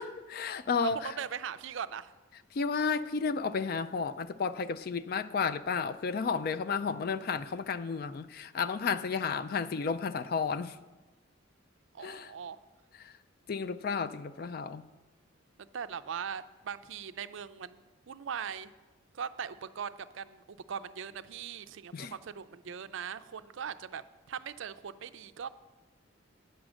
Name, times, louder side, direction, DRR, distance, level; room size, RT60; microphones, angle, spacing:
voice 1, 0.0-1.1 2.5-10.8 12.0-12.3 13.0-13.1 13.5-14.8 21.9-22.1, left 5 dB, 45° left, 0.3 m, -32 dB
voice 2, 0.8-2.1 11.9-12.6 15.7-18.7 19.1-25.5, right 7 dB, 65° right, 0.4 m, -40 dB
9.1 x 6.1 x 6.3 m
head